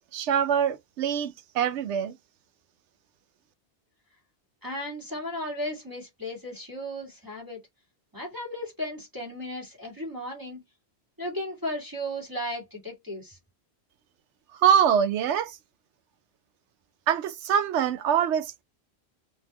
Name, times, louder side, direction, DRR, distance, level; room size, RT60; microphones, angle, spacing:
voice 1, 0.1-2.1 14.6-15.6 17.1-18.6, right 8 dB, 85° right, 0.9 m, -24 dB
voice 2, 4.6-7.6 8.1-10.6 11.2-13.4, equal, 20° right, 1.7 m, -35 dB
3.8 x 2.8 x 2.8 m
omnidirectional pair, 1.1 m